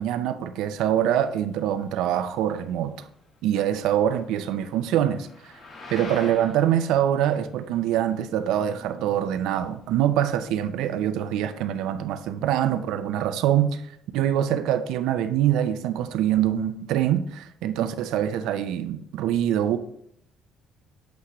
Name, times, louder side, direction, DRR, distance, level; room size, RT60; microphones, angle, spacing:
voice 1, 0.0-2.9 3.4-5.3 5.9-13.8 14.1-19.8, right 10 dB, 90° right, 0.5 m, -24 dB
sound 1, 0.8-10.7, left 2 dB, 35° left, 1.3 m, -47 dB
8.1 x 4.8 x 3.0 m
cardioid pair, 175°, 0 cm